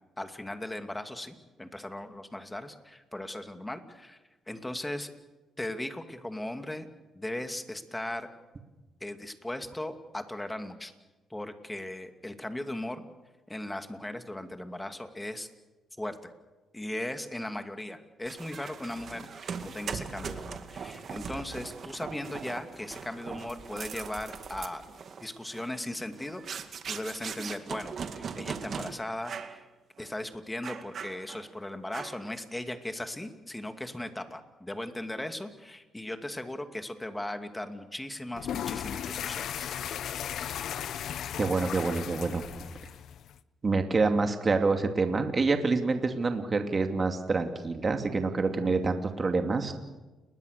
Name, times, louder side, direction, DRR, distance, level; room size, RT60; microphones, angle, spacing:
voice 1, 0.2-4.2 4.5-5.1 5.6-6.9 7.1-8.3 9.0-10.9 11.3-13.1 13.5-15.5 16.0-16.3 16.7-24.8 25.2-26.4 26.8-29.6 30.0-39.7, left 1 dB, 10° left, 7 dB, 2.5 m, -38 dB
sound 1, 18.3-28.9 29.2-29.6 30.0-30.1 30.6-31.5 31.9-32.3, right 6 dB, 55° right, 2.2 m, -40 dB
sound 2, 38.3-43.4, left 9 dB, 70° left, 0.8 m, -36 dB
voice 2, 41.4-42.4 43.6-49.7, right 3 dB, 35° right, 5 dB, 2.5 m, -27 dB
29.5 x 21.0 x 6.8 m, 1.1 s
cardioid pair, 90°, 0 cm